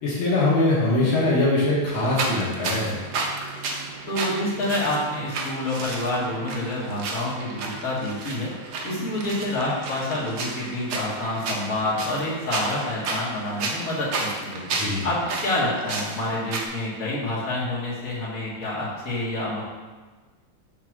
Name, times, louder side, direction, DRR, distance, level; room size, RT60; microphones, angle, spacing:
voice 1, 0.0-2.9 14.8-15.1, left 2 dB, 80° left, -6 dB, 2.1 m, -22 dB
sound 1, 1.9-16.7, right 3 dB, 70° right, 1.5 m, -32 dB
voice 2, 4.1-8.5 8.8-14.6 15.0-19.6, left 1 dB, 45° left, -8 dB, 2.4 m, -28 dB
6.0 x 3.7 x 6.0 m, 1.3 s
omnidirectional pair, 2.2 m